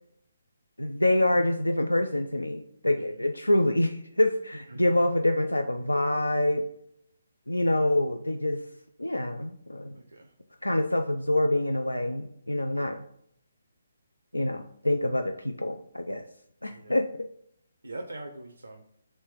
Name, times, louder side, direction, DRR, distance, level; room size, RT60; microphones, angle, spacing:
voice 1, 0.8-6.7 7.5-8.6 9.0-10.0 10.6-13.0 14.3-16.2 16.6-17.3, left 1 dB, 85° left, 6 dB, 0.3 m, -26 dB
voice 2, 9.9-10.3 16.7-17.0 17.8-18.8, right 2 dB, 75° right, 4 dB, 0.5 m, -42 dB
3.3 x 3.1 x 4.6 m, 0.70 s
figure-of-eight pair, 140°, 0 cm